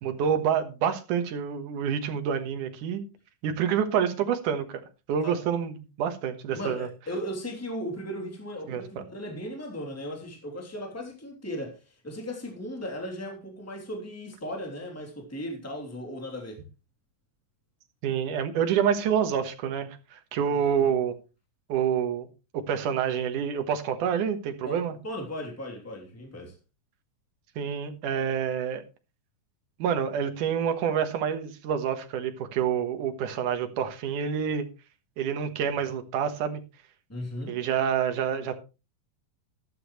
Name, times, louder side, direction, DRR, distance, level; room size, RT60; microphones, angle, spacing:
voice 1, 0.0-3.0 3.4-4.8 5.1-6.9 8.7-9.0 18.0-21.2 21.7-22.3 22.5-25.0 27.6-28.8 29.8-34.7 35.2-36.6 37.5-38.5, right 8 dB, 80° right, 2.8 m, -27 dB
voice 2, 6.5-16.6 20.8-20.9 24.6-26.5 37.1-37.6, equal, 5° left, 2.8 m, -37 dB
13.5 x 12.5 x 3.2 m
omnidirectional pair, 3.7 m